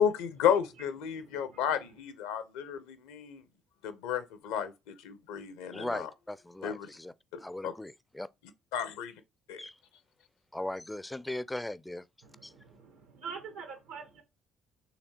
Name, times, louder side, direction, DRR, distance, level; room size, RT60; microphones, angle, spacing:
voice 1, 0.0-3.4 3.8-6.1 6.6-6.9 7.6-7.7 8.7-9.1 9.5-9.6, left 8 dB, 80° left, 0.6 m, -32 dB
voice 2, 1.0-1.9 12.2-14.2, right 5 dB, 85° right, 1.3 m, -46 dB
voice 3, 5.7-7.1 7.4-8.3 9.6-9.8 10.5-12.0 12.4-12.5, left 1 dB, 10° left, 0.4 m, -38 dB
5.8 x 3.2 x 2.8 m
hypercardioid pair, 55°, 0 cm